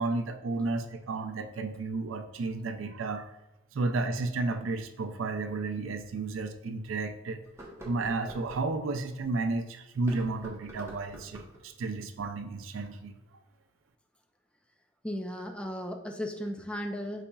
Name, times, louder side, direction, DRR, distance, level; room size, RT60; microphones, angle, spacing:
voice 1, 0.0-3.3 3.7-7.4 7.8-13.2, right 3 dB, 85° right, 7 dB, 0.4 m, -32 dB
sound 1, 5.5-5.6 6.2-6.3 7.4-8.7 9.9-11.6, equal, 15° right, 0.8 m, -46 dB
voice 2, 15.0-17.2, equal, 5° left, 4 dB, 0.3 m, -35 dB
4.8 x 4.0 x 2.3 m, 0.95 s
head